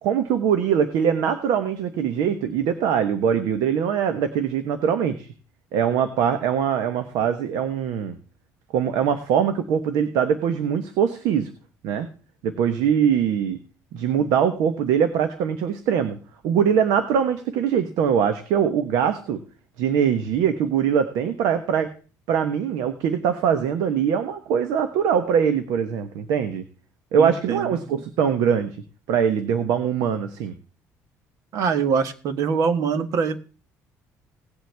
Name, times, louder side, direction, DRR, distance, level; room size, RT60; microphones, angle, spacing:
voice 1, 0.0-5.3 5.7-8.2 8.7-11.5 11.8-12.1 12.4-13.6 13.9-16.2 16.4-19.4 19.8-21.9 22.3-26.6 27.1-28.8 29.1-30.5, right 8 dB, 80° right, 9 dB, 1.2 m, -22 dB
voice 2, 27.2-27.8 31.5-33.4, right 6 dB, 60° right, 10 dB, 1.4 m, -23 dB
18.0 x 7.9 x 3.4 m, 0.37 s
cardioid pair, 140°, 6 cm